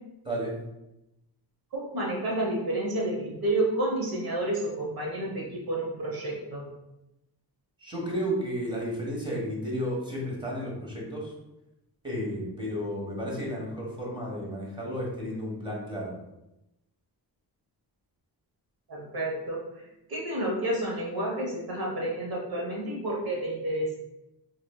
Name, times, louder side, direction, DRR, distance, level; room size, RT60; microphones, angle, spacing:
voice 1, 0.2-0.6 5.3-5.4 7.8-11.3 12.0-16.1, equal, 10° right, -4 dB, 1.3 m, -32 dB
voice 2, 1.7-6.7 18.9-19.6 20.1-24.0, right 1 dB, 60° right, -2 dB, 1.3 m, -30 dB
4.3 x 3.3 x 2.3 m, 0.91 s
wide cardioid pair, 120°, 40 cm